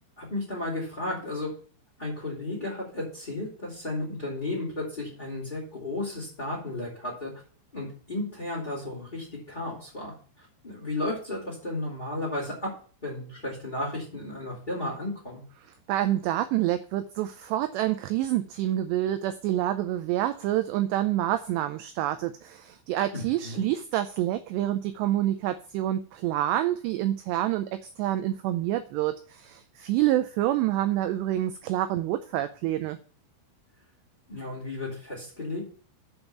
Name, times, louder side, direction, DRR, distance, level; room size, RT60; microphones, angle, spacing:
voice 1, 0.2-1.5 2.0-7.3 7.7-12.7 13.0-15.4 23.1-23.6 34.3-35.6, left 2 dB, 15° left, -6 dB, 2.3 m, -34 dB
voice 2, 15.9-27.7 28.0-33.0, right 13 dB, 90° right, 10 dB, 2.4 m, -27 dB
7.9 x 5.3 x 6.9 m, 0.42 s
omnidirectional pair, 5.5 m